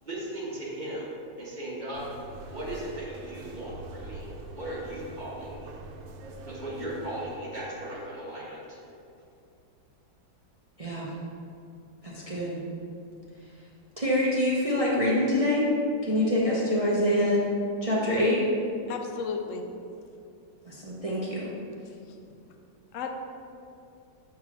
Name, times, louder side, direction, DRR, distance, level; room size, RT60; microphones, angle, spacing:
voice 1, 0.0-1.1 1.4-2.1 2.5-5.8 6.4-8.9, right 1 dB, 25° right, -6 dB, 1.2 m, -37 dB
sound 1, 1.9-7.4, right 2 dB, 90° right, 1.4 m, -44 dB
voice 2, 10.8-11.1 12.0-12.6 14.0-15.7 16.0-17.4 17.8-18.4 20.7-21.5, left 1 dB, 65° right, -6 dB, 0.3 m, -25 dB
voice 3, 18.9-19.6 22.1-22.2 22.9-23.1, left 6 dB, 70° left, 4 dB, 0.7 m, -33 dB
5.9 x 3.7 x 5.9 m, 2.5 s
omnidirectional pair, 2.1 m